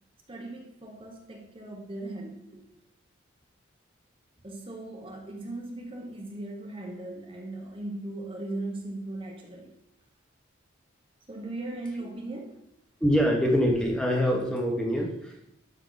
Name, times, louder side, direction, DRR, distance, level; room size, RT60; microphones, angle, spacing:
voice 1, 0.3-2.7 4.4-9.8 11.3-12.6, right 2 dB, 25° right, 0 dB, 1.1 m, -38 dB
voice 2, 13.0-15.5, equal, 5° left, 0 dB, 1.3 m, -25 dB
12.0 x 5.5 x 4.0 m, 0.78 s
head